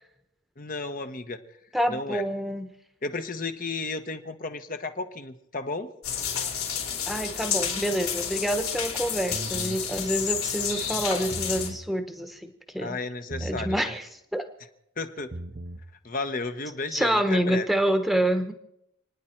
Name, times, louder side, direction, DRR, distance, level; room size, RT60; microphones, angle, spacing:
voice 1, 0.6-1.4 1.9-2.2 3.0-5.9 12.8-13.9 15.0-15.3 16.0-17.7, left 3 dB, 40° left, 8 dB, 1.0 m, -33 dB
voice 2, 1.7-2.7 7.0-12.5 12.7-13.0 13.4-14.4 16.9-18.5, right 1 dB, ahead, 7 dB, 1.1 m, -27 dB
sound 1, 6.0-11.7, left 8 dB, 90° left, 4.3 m, -30 dB
sound 2, 9.3-9.8 11.2-11.8 13.3-13.8 15.2-15.8, right 2 dB, 40° right, 0.7 m, -37 dB
29.5 x 10.0 x 4.5 m, 0.80 s
head